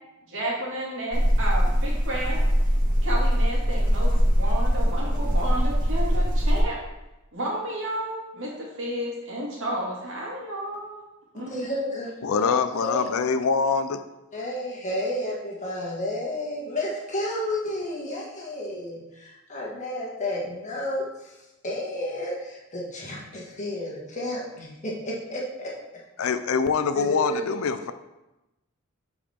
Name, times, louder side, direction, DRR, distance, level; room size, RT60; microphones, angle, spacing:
voice 1, 0.3-2.4 3.0-6.8 7.3-11.0 11.3-11.5, right 1 dB, 60° right, -3 dB, 2.3 m, -32 dB
sound 1, 1.1-6.6, equal, 40° right, 1.7 m, -22 dB
voice 2, 11.3-13.0 14.3-21.3 21.6-25.7 27.0-27.6, left 1 dB, 35° left, -4 dB, 1.9 m, -31 dB
voice 3, 12.2-14.0 26.2-27.9, left 5 dB, 70° left, 11 dB, 0.4 m, -24 dB
10.0 x 4.9 x 3.6 m, 0.98 s
head